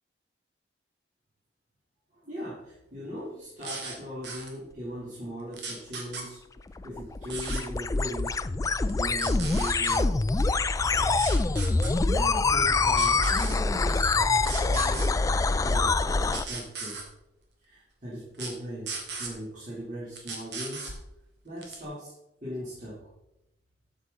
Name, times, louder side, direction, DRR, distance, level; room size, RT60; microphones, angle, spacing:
voice 1, 2.1-6.4 6.8-8.4 8.8-10.2 12.0-14.1 14.4-17.0 17.6-20.9 21.4-22.1 22.4-23.1, equal, 45° right, -9 dB, 3.2 m, -39 dB
sound 1, 3.6-4.0 4.2-4.5 5.5-6.3 7.3-7.6 8.9-10.0 11.1-11.9 12.9-13.6 14.4-15.1 16.3-17.1 18.3-18.5 18.9-19.3 20.2-21.0 21.6-21.8, right 4 dB, 75° right, 2.0 m, -36 dB
sound 2, 6.6-16.5, left 3 dB, 20° left, 0.3 m, -25 dB
12.5 x 6.3 x 4.0 m, 0.87 s
head